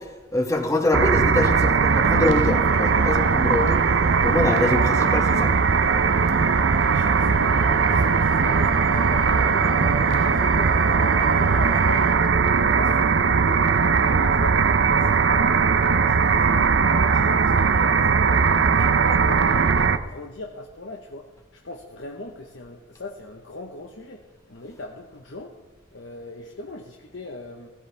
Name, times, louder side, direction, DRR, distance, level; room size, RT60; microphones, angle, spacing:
voice 1, 0.3-3.8 4.2-5.5, left 1 dB, 15° left, 4 dB, 1.4 m, -24 dB
sound 1, 0.9-20.0, right 5 dB, 75° right, 0.6 m, -19 dB
sound 2, 1.8-12.1, left 2 dB, 50° left, 1.9 m, -37 dB
voice 2, 6.9-24.2 24.5-25.6 25.9-27.7, left 2 dB, 80° left, 1 dB, 1.1 m, -39 dB
16.0 x 15.0 x 3.5 m, 1.2 s
head